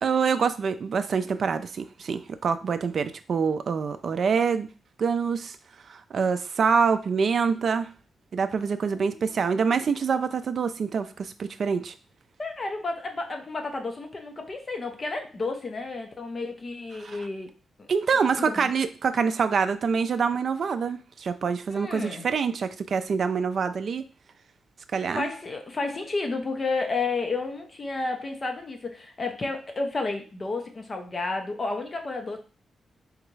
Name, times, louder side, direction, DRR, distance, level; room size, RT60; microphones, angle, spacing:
voice 1, 0.0-4.7 5.0-5.6 5.9-7.9 8.3-11.9 17.0-17.3 17.9-24.1 24.9-25.3, right 5 dB, 45° right, 10 dB, 0.4 m, -26 dB
voice 2, 8.9-9.3 12.4-17.5 17.8-17.9 18.3-18.7 21.7-22.3 25.1-32.4, left 3 dB, 25° left, 4 dB, 0.7 m, -31 dB
3.9 x 3.5 x 3.2 m, 0.36 s
wide cardioid pair, 160°, 0 cm